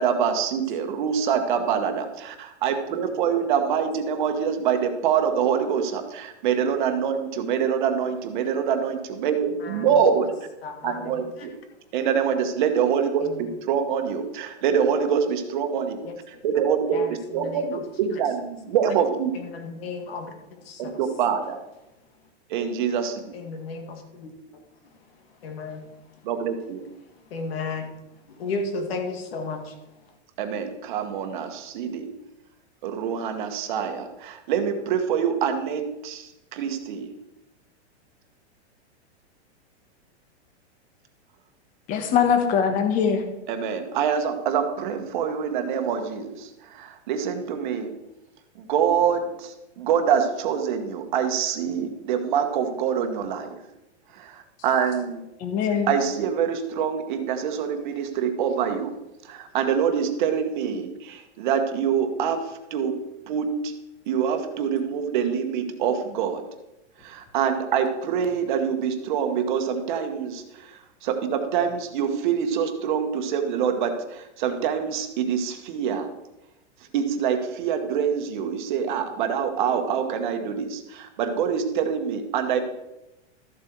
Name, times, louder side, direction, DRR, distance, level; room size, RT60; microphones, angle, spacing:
voice 1, 0.0-10.3 10.8-11.5 11.9-16.0 16.3-19.3 20.8-21.6 22.5-23.2 26.2-26.8 30.4-32.1 32.8-37.1 43.5-47.9 48.6-53.6 54.1-55.2 55.9-58.9 59.2-62.9 63.3-63.7 64.1-66.4 67.0-76.1 76.9-82.6, right 7 dB, 45° right, 6 dB, 1.3 m, -25 dB
voice 2, 9.6-10.0 10.6-11.5 13.2-13.5 16.0-16.1 16.9-18.2 19.3-21.0 23.3-24.6 25.4-25.9 27.3-29.8, left 3 dB, 60° left, 4 dB, 2.3 m, -34 dB
voice 3, 41.9-43.2 55.4-55.9, left 7 dB, 25° left, 6 dB, 1.2 m, -22 dB
13.5 x 7.6 x 4.7 m, 0.94 s
supercardioid pair, 170°, 34 cm